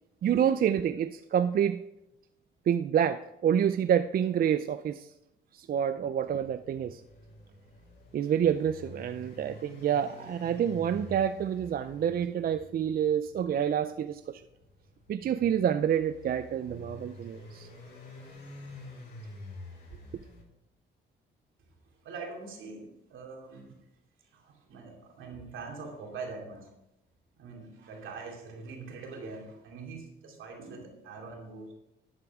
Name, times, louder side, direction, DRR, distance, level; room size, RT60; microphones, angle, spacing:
voice 1, 0.2-1.8 2.7-5.1 5.5-7.0 8.1-14.4 15.1-17.7, right 9 dB, 50° right, 0.4 m, -28 dB
sound 1, 6.1-20.4, left 2 dB, 65° left, 4.4 m, -48 dB
voice 2, 22.0-23.8 24.3-26.7 27.4-31.7, right 4 dB, 80° right, 2.7 m, -43 dB
12.0 x 8.3 x 3.6 m
cardioid pair, 90°, 20 cm